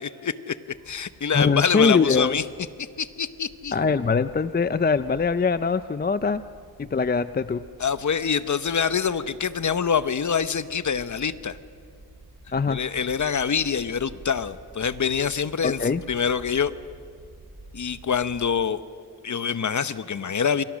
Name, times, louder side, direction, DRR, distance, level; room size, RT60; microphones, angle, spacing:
voice 1, 0.0-2.4 2.8-3.7 7.8-11.6 12.7-16.7 17.7-18.8 19.2-20.6, left 7 dB, 45° left, 13 dB, 1.0 m, -25 dB
sound 1, 0.7-18.5, right 2 dB, 45° right, 5.8 m, -49 dB
voice 2, 1.3-2.4 3.7-6.4 6.8-7.6 12.5-12.8 15.6-16.0, left 5 dB, 25° left, 13 dB, 0.5 m, -22 dB
28.5 x 23.5 x 6.4 m, 2.3 s
wide cardioid pair, 100°, 39 cm